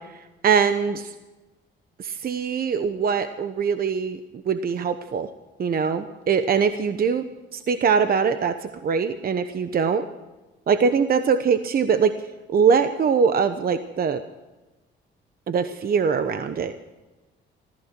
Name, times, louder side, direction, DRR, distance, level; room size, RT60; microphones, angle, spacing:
voice 1, 0.4-1.1 2.0-4.2 4.4-5.3 5.6-7.2 7.5-10.0 10.7-12.2 12.5-14.2 15.5-16.7, right 6 dB, 50° right, 10 dB, 1.0 m, -22 dB
15.0 x 14.0 x 6.1 m, 1.1 s
cardioid pair, 90°, 20 cm